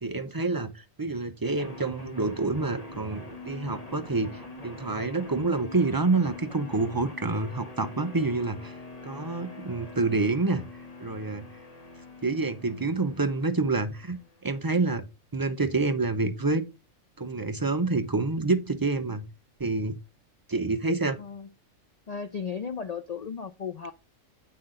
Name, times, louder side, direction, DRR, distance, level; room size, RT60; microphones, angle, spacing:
voice 1, 0.0-8.7 9.0-10.6 11.0-11.5 12.2-14.2 14.4-15.1 15.3-16.6 17.2-19.3 19.6-20.0 20.5-21.2, right 3 dB, 30° right, 0.3 m, -27 dB
sound 1, 1.6-14.6, left 2 dB, 30° left, 1.4 m, -44 dB
voice 2, 21.2-21.5 22.1-23.9, left 6 dB, 85° left, 0.3 m, -35 dB
8.5 x 5.7 x 3.8 m
omnidirectional pair, 1.4 m